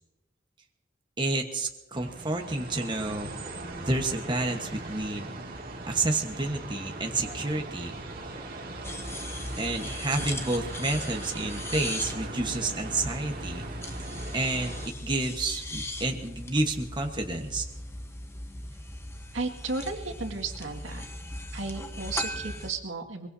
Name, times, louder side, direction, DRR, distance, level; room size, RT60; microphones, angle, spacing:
voice 1, 1.2-3.3 3.8-5.3 5.9-8.0 9.6-13.6 14.3-14.7 15.0-17.7, right 2 dB, 25° right, 3 dB, 1.2 m, -30 dB
sound 1, 1.9-14.9, right 2 dB, 50° right, 2.4 m, -39 dB
sound 2, 8.8-22.7, left 1 dB, 15° left, 1.0 m, -38 dB
voice 2, 19.3-21.1 21.5-23.3, right 3 dB, 85° right, 3 dB, 2.1 m, -34 dB
23.0 x 22.0 x 2.8 m, 1.0 s
head